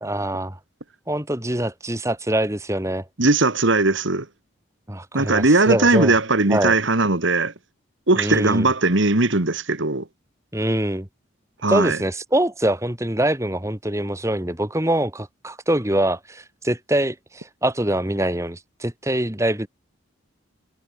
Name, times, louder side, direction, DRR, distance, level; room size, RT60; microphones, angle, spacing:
voice 1, 0.0-0.6 1.1-3.1 4.9-6.1 6.5-6.8 8.2-8.7 10.5-11.1 11.7-19.7, right 1 dB, 15° right, 1.9 m, -24 dB
voice 2, 3.2-4.3 5.1-7.5 8.1-10.0 11.6-12.0, right 2 dB, 65° right, 1.9 m, -19 dB
head